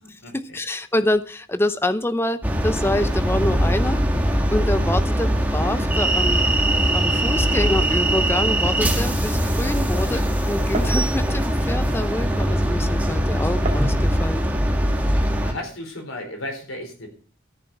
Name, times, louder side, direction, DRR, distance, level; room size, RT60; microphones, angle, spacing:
voice 1, 0.0-0.6 12.9-13.2 14.9-15.0 15.4-17.1, left 1 dB, 85° left, 4 dB, 4.5 m, -35 dB
voice 2, 0.5-4.0 4.5-6.5 6.9-14.4, left 1 dB, 10° left, 11 dB, 0.6 m, -26 dB
sound 1, 2.4-15.5, equal, 10° right, 1.4 m, -21 dB
Glass, 8.8-13.9, right 2 dB, 30° right, 2.2 m, -38 dB
14.0 x 6.9 x 7.2 m, 0.40 s
head